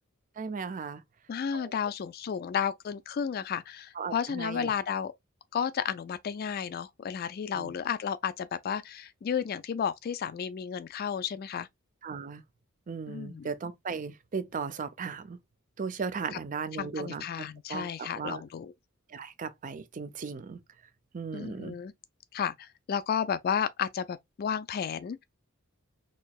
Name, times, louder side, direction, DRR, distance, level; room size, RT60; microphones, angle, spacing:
voice 1, 0.4-1.0 1.5-1.7 4.0-4.7 7.6-7.7 12.0-12.4 12.9-15.4 15.8-18.4 19.1-20.6 21.1-21.7, right 5 dB, 40° right, 0.4 m, -37 dB
voice 2, 1.3-5.1 5.5-11.7 13.1-13.5 16.3-16.4 16.7-18.7 21.3-21.9 22.3-25.2, left 7 dB, 45° left, 0.3 m, -32 dB
4.5 x 2.9 x 2.3 m
head